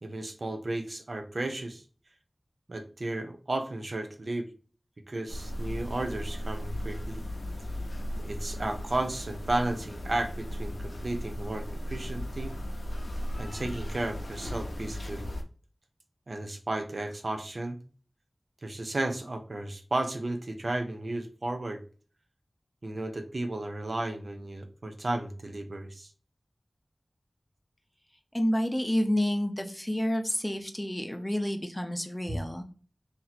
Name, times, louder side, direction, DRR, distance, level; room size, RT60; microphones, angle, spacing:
voice 1, 0.0-1.8 2.7-4.5 5.1-7.2 8.2-12.6 13.4-15.3 16.3-17.8 18.6-21.8 22.8-26.1, right 2 dB, 70° right, 6 dB, 0.7 m, -33 dB
sound 1, 5.3-15.4, equal, 80° left, 0.5 m, -36 dB
voice 2, 28.3-32.6, equal, 15° left, 5 dB, 0.6 m, -29 dB
3.0 x 2.7 x 4.1 m, 0.39 s
wide cardioid pair, 50°, 0 cm